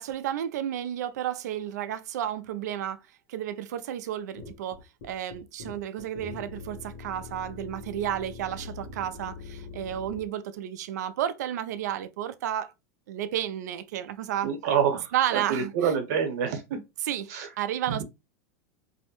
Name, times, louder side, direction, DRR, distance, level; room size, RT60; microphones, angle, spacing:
voice 1, 0.0-3.0 3.3-12.7 13.1-14.5 15.1-15.7 17.0-17.3 17.6-18.0, right 11 dB, 90° right, 0.4 m, -32 dB
sound 1, 4.4-10.3, left 4 dB, 60° left, 0.8 m, -43 dB
voice 2, 14.4-16.8 17.3-17.5 17.9-18.0, right 7 dB, 75° right, 0.9 m, -27 dB
2.7 x 2.1 x 2.8 m
supercardioid pair, 135°, 9 cm